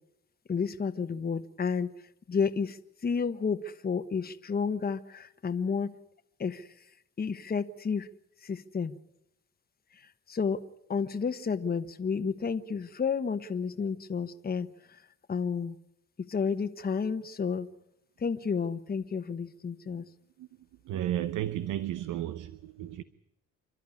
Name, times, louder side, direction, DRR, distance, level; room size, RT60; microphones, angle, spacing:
voice 1, 0.5-1.9 2.3-5.9 6.4-6.9 7.2-8.1 8.4-9.0 9.9-10.6 10.9-15.8 16.3-17.7 18.2-20.0, left 5 dB, 30° left, 1.2 m, -31 dB
voice 2, 20.9-23.0, right 12 dB, 85° right, 0.9 m, -33 dB
29.0 x 11.5 x 9.8 m
cardioid pair, 90°, 30 cm